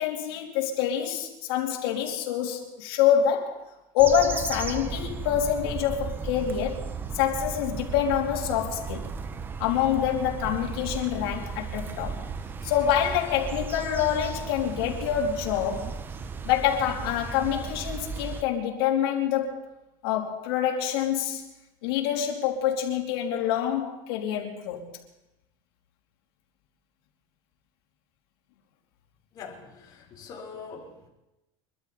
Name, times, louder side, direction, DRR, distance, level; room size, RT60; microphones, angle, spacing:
voice 1, 0.0-3.6 3.9-6.8 7.1-9.1 9.6-12.3 12.6-16.0 16.4-19.6 20.0-21.4 21.8-24.9, left 9 dB, 75° left, 3.2 m, -26 dB
sound 1, 4.0-18.4, right 5 dB, 15° right, 0.6 m, -35 dB
voice 2, 29.3-31.1, left 5 dB, 30° left, 4.1 m, -43 dB
25.0 x 13.0 x 4.2 m
cardioid pair, 170°, 12 cm